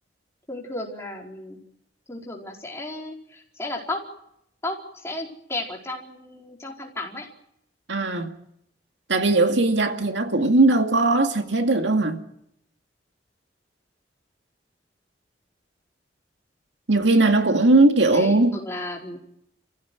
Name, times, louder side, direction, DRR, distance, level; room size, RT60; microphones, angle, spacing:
voice 1, 0.5-1.6 2.1-4.0 4.6-7.3 18.1-19.2, left 2 dB, 15° left, 4.5 m, -34 dB
voice 2, 7.9-8.3 9.1-12.2 16.9-18.6, right 2 dB, 90° right, 2.2 m, -19 dB
28.0 x 15.5 x 9.4 m
head